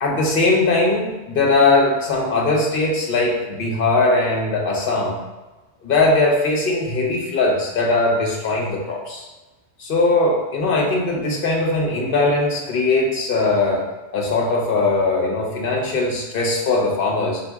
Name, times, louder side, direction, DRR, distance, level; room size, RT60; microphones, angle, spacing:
voice 1, 0.0-5.2 5.8-9.2 9.8-13.8 14.1-17.4, left 2 dB, 55° left, -1 dB, 1.0 m, -20 dB
4.1 x 2.5 x 3.4 m, 1.1 s
omnidirectional pair, 1.1 m